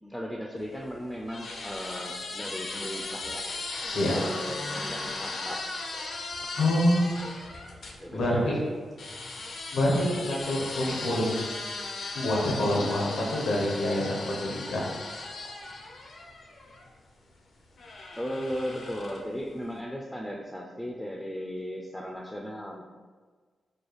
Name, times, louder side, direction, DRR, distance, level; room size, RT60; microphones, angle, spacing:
voice 1, 0.0-3.4 4.1-5.6 6.4-6.8 8.0-8.8 18.2-22.8, equal, 5° left, -1 dB, 0.3 m, -36 dB
sound 1, 0.6-8.0 9.0-16.9 17.8-19.4, left 3 dB, 65° left, 0.5 m, -37 dB
voice 2, 6.6-7.1 8.1-8.5 9.7-11.5 12.1-14.8, left 1 dB, 90° left, -3 dB, 0.9 m, -26 dB
4.6 x 2.3 x 3.1 m, 1.5 s
wide cardioid pair, 115°, 0 cm